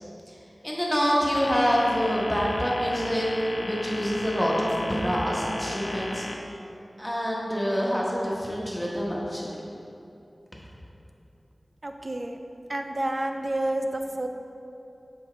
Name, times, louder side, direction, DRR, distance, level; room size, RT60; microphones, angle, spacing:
voice 1, 0.6-6.3 7.0-9.5, equal, 5° left, -4 dB, 1.1 m, -26 dB
sound 1, 1.3-6.3, left 2 dB, 85° left, 0.4 m, -36 dB
voice 2, 11.8-12.4 12.7-14.3, right 1 dB, 40° right, 5 dB, 0.4 m, -29 dB
7.1 x 4.9 x 3.3 m, 2.7 s
wide cardioid pair, 70°, 0 cm